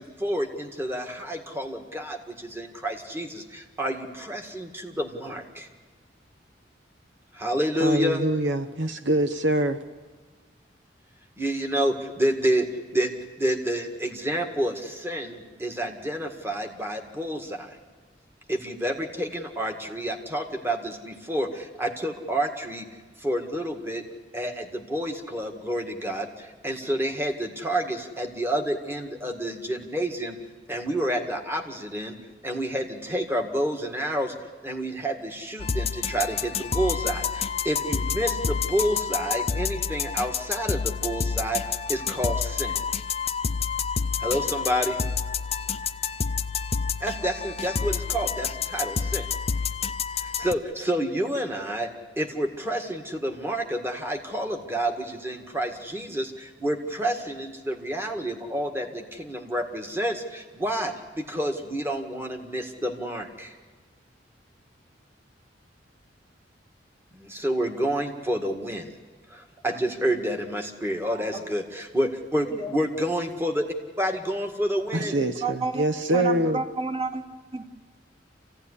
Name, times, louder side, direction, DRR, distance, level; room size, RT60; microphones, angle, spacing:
voice 1, 0.0-5.7 7.3-8.2 11.4-12.7 12.9-17.8 18.5-22.9 23.2-24.0 24.3-30.4 30.7-32.2 32.4-34.3 34.6-42.8 44.2-45.0 47.0-49.3 50.2-51.9 52.2-63.6 67.1-68.9 69.3-73.7 74.0-75.2, right 1 dB, 15° right, 1.9 m, -29 dB
voice 2, 7.8-9.8 74.9-76.6, right 1 dB, 85° right, 0.9 m, -24 dB
sound 1, 35.6-50.5, left 6 dB, 35° left, 0.6 m, -29 dB
voice 3, 71.1-71.5 72.4-72.7 75.0-75.9 76.1-77.2 77.5-77.6, right 4 dB, 35° right, 2.4 m, -31 dB
27.0 x 16.0 x 9.9 m
head